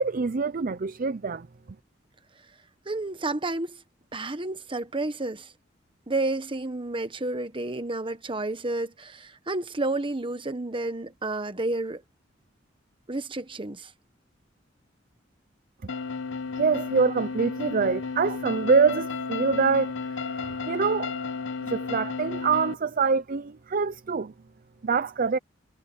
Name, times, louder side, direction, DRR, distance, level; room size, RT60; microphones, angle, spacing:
voice 1, 0.0-1.5 16.6-21.1 21.6-24.3 24.8-25.4, right 5 dB, 50° right, 0.5 m, -25 dB
voice 2, 2.8-3.8 4.1-5.5 6.1-12.0 13.1-13.9, right 2 dB, 30° right, 1.3 m, -30 dB
sound 1, 15.9-22.7, left 4 dB, 80° left, 1.0 m, -33 dB
head